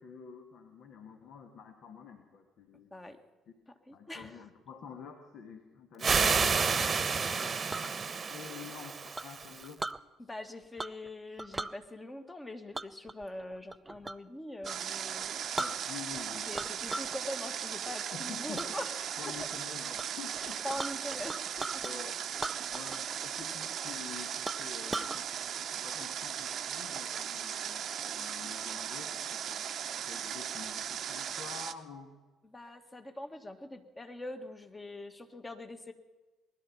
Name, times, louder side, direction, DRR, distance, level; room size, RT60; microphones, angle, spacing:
voice 1, 0.0-2.9 3.9-9.8 15.6-16.8 18.1-18.8 19.2-20.6 21.8-22.2 22.7-25.3 25.5-29.6 29.9-32.1, left 6 dB, 60° left, 5 dB, 1.4 m, -48 dB
voice 2, 3.7-4.4 10.2-15.5 16.5-19.2 20.4-21.8 22.8-22.9 32.4-35.9, left 1 dB, 20° left, 6 dB, 1.7 m, -43 dB
sound 1, 6.0-9.7, right 5 dB, 35° right, 1.1 m, -30 dB
Chink clink, 7.4-7.9 9.2-10.0 10.8-11.1 11.4-11.8 12.7-14.3 14.6-14.8 15.2-15.3 15.6-16.2 16.5-17.2 17.6-17.9 18.6-18.7 19.2-19.6 20.0-20.1 20.3-21.9 22.3-23.2 23.4-23.5 24.0-24.1 24.5-25.2, right 2 dB, 15° right, 0.5 m, -39 dB
Water, 14.6-31.7, right 9 dB, 50° right, 0.7 m, -38 dB
19.5 x 12.0 x 5.7 m, 1.2 s
figure-of-eight pair, 50°, 0 cm